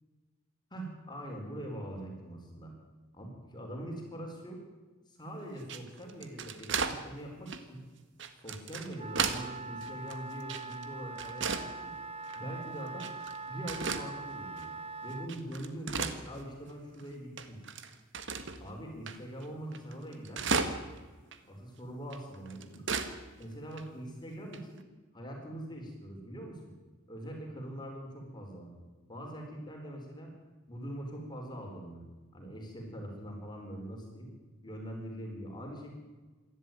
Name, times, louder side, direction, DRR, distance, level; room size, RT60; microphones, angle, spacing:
voice 1, 0.7-2.7 3.1-4.6 5.1-7.8 8.4-11.9 12.3-13.1 13.4-14.7 15.0-17.6 18.6-20.7 21.4-22.9 23.4-24.8 25.1-26.7 27.1-28.7 29.1-30.3 30.7-32.0 32.3-34.3 34.6-35.9, right 1 dB, 20° left, 1 dB, 4.5 m, -43 dB
sound 1, 5.6-7.0 7.5-7.6 8.2-9.5 9.8-10.9 11.2-11.7 12.2-12.4 13.0-13.4 13.7-14.1 14.6-14.7 15.1-16.7 17.0-17.1 17.4-18.6 19.1-19.2 19.4-19.5 19.7-21.0 21.3-21.4 22.1-23.1 23.4-23.5 23.7-23.8 24.5-24.8, right 5 dB, 65° right, 1.6 m, -34 dB
Wind instrument woodwind instrument, 9.0-15.3, right 3 dB, 30° right, 1.0 m, -42 dB
27.0 x 12.0 x 9.2 m, 1.3 s
head